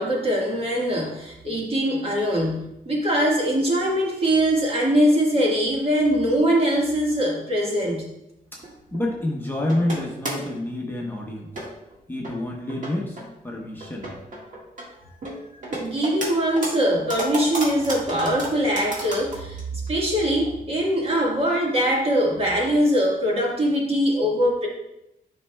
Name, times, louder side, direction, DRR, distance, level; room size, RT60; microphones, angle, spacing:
voice 1, 0.0-8.1 15.7-24.7, equal, 40° right, -2 dB, 1.6 m, -22 dB
sound 1, 8.6-9.1 9.7-10.5 11.0-11.1 11.5-11.9 12.2-12.3 12.7-13.3 13.8-14.9 15.2-16.3 16.6-19.6 19.9-20.0 20.5-20.6 20.8-20.9 21.8-22.0 22.4-22.5, right 1 dB, 60° right, 1.7 m, -32 dB
voice 2, 8.9-11.5 12.1-14.1, left 1 dB, 15° left, -2 dB, 0.9 m, -28 dB
10.5 x 5.3 x 2.3 m, 0.86 s
wide cardioid pair, 140°, 15 cm